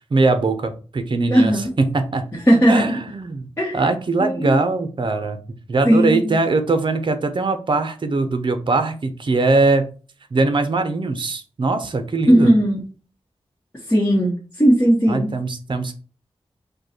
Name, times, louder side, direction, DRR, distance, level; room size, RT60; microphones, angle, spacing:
voice 1, 0.1-2.3 2.7-3.5 3.7-5.4 5.7-9.9 10.3-12.5 15.1-15.9, right 3 dB, 50° right, 8 dB, 0.7 m, -21 dB
voice 2, 1.3-1.7 2.5-3.0 3.6-3.8 4.2-4.6 5.8-6.4 12.3-12.8 13.9-15.3, equal, 20° left, -4 dB, 1.1 m, -17 dB
5.2 x 2.3 x 4.3 m, 0.37 s
wide cardioid pair, 120°, 11 cm